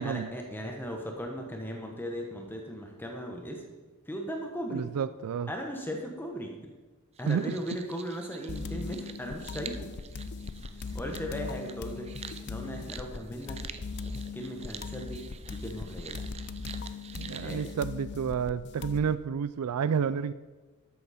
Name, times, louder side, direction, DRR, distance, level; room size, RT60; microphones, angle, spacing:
voice 1, 0.0-3.6 4.1-4.9 5.5-6.5 7.2-9.9 10.9-12.1 12.4-13.6 14.3-16.2 17.3-17.7, equal, 10° left, 2 dB, 1.1 m, -37 dB
voice 2, 4.7-5.5 7.3-7.5 17.1-20.3, right 7 dB, 90° right, 15 dB, 0.4 m, -30 dB
sound 1, 7.2-17.7, right 7 dB, 30° right, 0.5 m, -48 dB
sound 2, 8.5-19.1, left 4 dB, 50° left, 0.5 m, -39 dB
12.5 x 8.4 x 4.2 m, 1.3 s
head